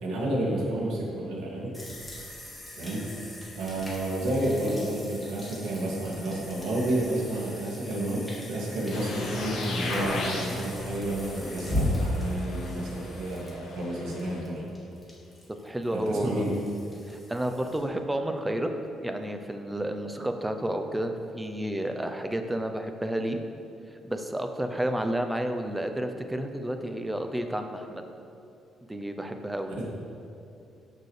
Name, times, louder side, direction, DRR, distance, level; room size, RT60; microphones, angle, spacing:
voice 1, 0.0-1.7 2.8-3.1 3.5-14.6 15.9-16.5 29.8-29.9, right 1 dB, 80° right, -3 dB, 2.2 m, -30 dB
sound 1, 1.7-17.8, left 1 dB, 10° left, 1.8 m, -38 dB
sound 2, 8.9-14.4, left 2 dB, 60° left, 1.5 m, -36 dB
voice 2, 15.6-16.5 17.1-18.7 19.0-23.4 24.0-28.0 28.9-29.8, right 1 dB, 5° right, 6 dB, 0.5 m, -31 dB
12.5 x 6.8 x 3.3 m, 2.7 s
cardioid pair, 160°, 0 cm